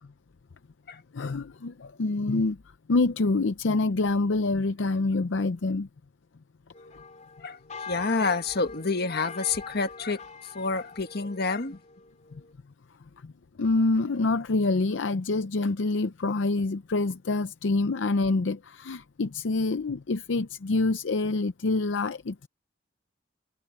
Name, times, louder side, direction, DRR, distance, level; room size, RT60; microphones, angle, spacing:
voice 1, 1.1-2.6 2.9-5.9 13.2-13.3 13.6-22.5, left 3 dB, 75° left, 0.6 m, -26 dB
sound 1, 6.7-12.5, left 4 dB, 40° left, 4.3 m, -44 dB
voice 2, 7.4-11.8, left 4 dB, 60° left, 1.5 m, -29 dB
head